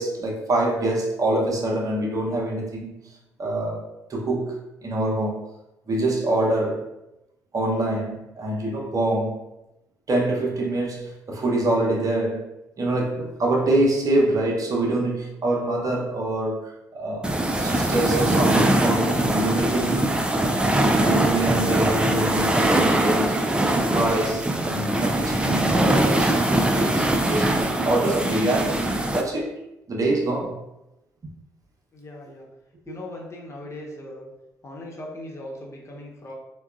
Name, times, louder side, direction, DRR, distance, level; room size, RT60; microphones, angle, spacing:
voice 1, 0.0-3.1 3.4-3.8 4.1-5.5 5.9-6.9 7.5-9.4 10.1-12.5 12.8-20.1 20.4-20.6 20.9-23.5 23.7-28.8 29.1-29.6 29.9-30.6, right 2 dB, 45° right, -2 dB, 0.8 m, -25 dB
sound 1, 17.2-29.2, right 1 dB, 10° right, 0.4 m, -22 dB
voice 2, 31.9-32.5 32.9-34.3 34.6-36.3, left 1 dB, 35° left, -2 dB, 1.0 m, -39 dB
3.8 x 2.2 x 2.4 m, 0.93 s
hypercardioid pair, 45°, 8 cm